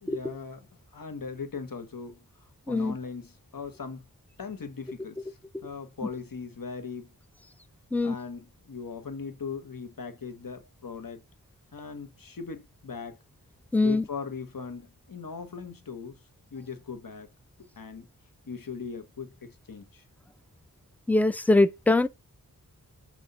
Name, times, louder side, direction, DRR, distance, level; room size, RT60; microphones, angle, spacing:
voice 1, 0.0-4.1 4.4-7.1 8.0-11.2 11.7-13.2 13.8-16.2 16.5-17.3 17.6-18.1 18.5-20.0, left 5 dB, 65° left, 0.9 m, -39 dB
voice 2, 13.7-14.0 21.1-22.1, left 2 dB, 5° left, 0.3 m, -22 dB
5.6 x 2.4 x 3.7 m
wide cardioid pair, 55°, 36 cm